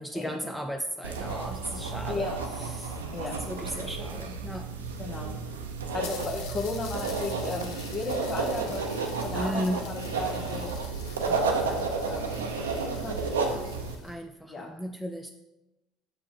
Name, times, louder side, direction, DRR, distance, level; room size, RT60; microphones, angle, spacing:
voice 1, 0.0-2.3 2.6-3.0 3.5-4.7 9.3-9.8 14.0-15.3, equal, ahead, 5 dB, 0.4 m, -35 dB
sound 1, 1.0-13.9, right 4 dB, 80° right, 0.6 m, -32 dB
sound 2, 1.4-3.8 4.7-4.8 5.0-5.1 5.5-5.6 6.0-14.2, left 5 dB, 65° left, 0.9 m, -47 dB
voice 2, 2.1-2.4 3.1-3.4 5.0-5.4 5.9-10.7 11.2-12.4 12.8-13.7 14.5-14.8, left 3 dB, 40° left, -1 dB, 1.0 m, -36 dB
6.4 x 4.6 x 3.8 m, 0.99 s
figure-of-eight pair, 60°, 0 cm